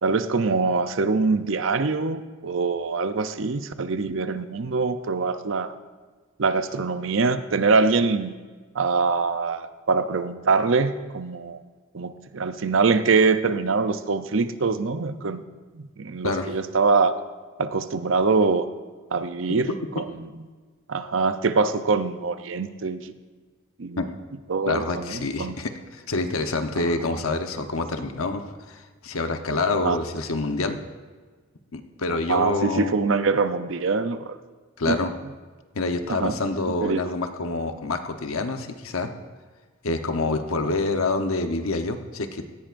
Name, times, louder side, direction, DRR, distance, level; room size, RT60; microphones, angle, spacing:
voice 1, 0.0-5.7 6.4-8.3 8.7-11.6 11.9-15.4 15.7-17.2 17.6-18.7 19.1-19.7 20.0-20.3 20.9-23.1 23.8-24.0 24.5-25.6 26.8-26.9 29.7-30.0 32.3-34.4 34.9-35.1 36.1-36.4 36.8-37.0, right 4 dB, 65° right, 11 dB, 0.6 m, -24 dB
voice 2, 19.7-20.0 24.0-24.1 24.7-30.8 31.7-32.9 34.8-35.1 35.7-39.1 39.8-42.4, left 3 dB, 90° left, 6 dB, 1.0 m, -27 dB
17.5 x 15.0 x 2.6 m, 1.4 s
head